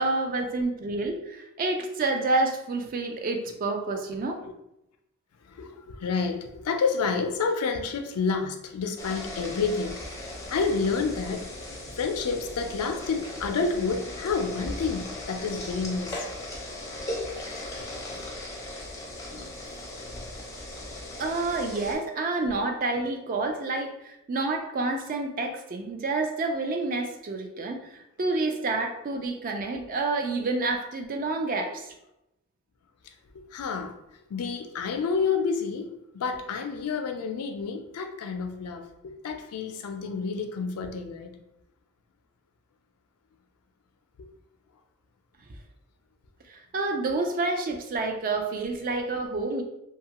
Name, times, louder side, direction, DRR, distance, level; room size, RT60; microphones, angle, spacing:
voice 1, 0.0-4.4 21.2-31.9 46.5-49.6, right 3 dB, 40° right, 4 dB, 0.4 m, -29 dB
voice 2, 5.4-10.0 10.5-11.5 11.9-16.3 33.0-33.1 33.5-34.0 34.3-41.3, left 5 dB, 85° left, 5 dB, 0.4 m, -29 dB
sound 1, 9.0-22.0, left 1 dB, 15° left, 0.5 m, -38 dB
2.7 x 2.3 x 2.9 m, 0.87 s
head